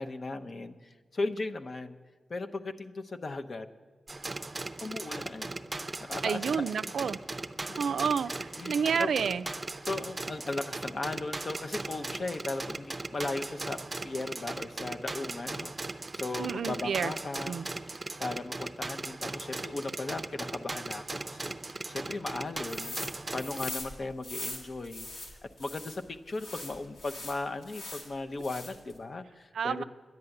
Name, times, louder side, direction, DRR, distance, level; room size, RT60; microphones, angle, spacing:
voice 1, 0.0-2.0 2.3-3.7 4.8-7.1 7.7-8.1 8.6-9.1 9.9-17.5 18.2-21.5 21.9-25.1 25.4-29.8, left 3 dB, 50° left, 7 dB, 0.7 m, -37 dB
sound 1, 4.1-23.7, right 2 dB, 30° right, 0.5 m, -38 dB
voice 2, 6.2-7.2 7.8-9.5 16.4-17.1 17.5-17.7 29.5-29.8, right 6 dB, 85° right, 13 dB, 0.3 m, -30 dB
sound 2, 22.7-23.1 23.4-26.0 26.3-28.1 28.4-28.9, left 2 dB, 85° left, 2.1 m, -41 dB
10.5 x 7.7 x 9.7 m, 1.4 s
cardioid pair, 65°, 0 cm